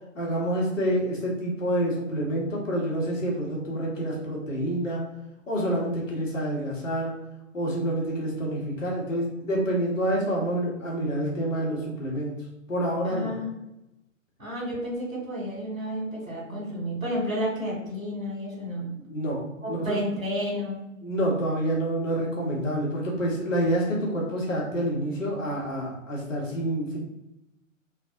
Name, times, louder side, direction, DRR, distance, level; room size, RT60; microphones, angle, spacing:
voice 1, 0.1-5.0 5.5-7.1 7.5-12.4 12.7-13.3 18.9-20.0 21.0-27.0, right 1 dB, 70° left, -3 dB, 1.1 m, -28 dB
voice 2, 13.0-13.5 14.4-18.9 19.6-20.8, equal, 80° right, -5 dB, 1.5 m, -31 dB
3.3 x 2.0 x 2.5 m, 0.93 s
figure-of-eight pair, 120°, 40 cm